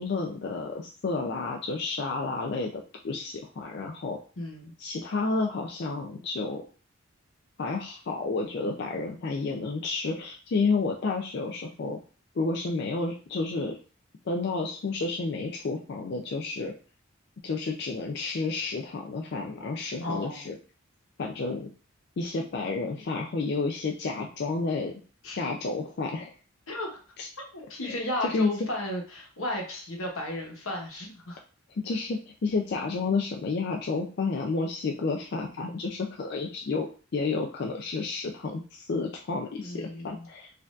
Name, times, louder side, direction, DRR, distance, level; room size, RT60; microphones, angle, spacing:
voice 1, 0.0-4.2 4.8-6.6 7.6-12.0 12.4-13.8 14.3-16.7 17.4-20.5 21.2-21.7 22.2-24.9 25.4-26.3 27.2-27.3 27.8-28.5 31.8-36.9 37.1-40.5, left 3 dB, 55° left, 1 dB, 0.4 m, -30 dB
voice 2, 4.4-4.7 20.0-20.5 25.2-25.5 26.7-27.0 27.5-31.4 39.6-40.3, left 1 dB, 85° left, 0 dB, 1.1 m, -34 dB
4.3 x 2.7 x 2.4 m, 0.38 s
head